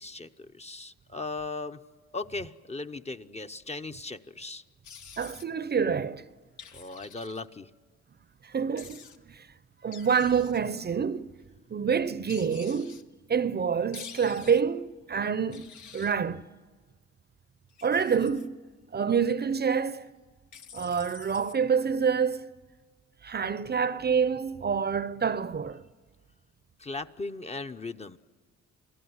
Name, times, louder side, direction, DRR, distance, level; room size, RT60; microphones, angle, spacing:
voice 1, 0.0-1.8 2.1-4.6 6.7-7.7 26.8-28.2, left 3 dB, 20° left, 0.8 m, -38 dB
sound 1, 4.8-5.5 6.6-7.4 8.8-9.2 9.9-10.6 12.3-13.0 13.9-14.6 15.5-16.1 17.7-18.5 20.5-21.6, left 7 dB, 75° left, 1.5 m, -48 dB
voice 2, 5.2-6.2 8.4-9.5 9.8-11.3 11.7-13.0 13.3-15.7 15.9-16.5 17.8-18.6 18.9-20.1 20.7-22.5 23.2-25.8, right 6 dB, 35° right, 0.7 m, -27 dB
29.0 x 17.5 x 9.6 m
cardioid pair, 90°, 30 cm